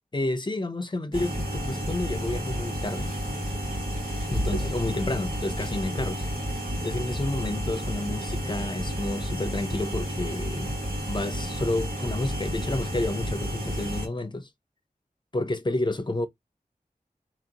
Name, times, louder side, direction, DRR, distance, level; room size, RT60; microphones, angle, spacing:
voice 1, 0.1-3.1 4.3-6.2 6.8-10.7 11.1-14.5 15.3-16.3, left 2 dB, 30° left, 0.7 m, -30 dB
sound 1, 1.1-14.1, equal, 85° right, 2.0 m, -31 dB
2.9 x 2.8 x 4.0 m
wide cardioid pair, 65°, 15 cm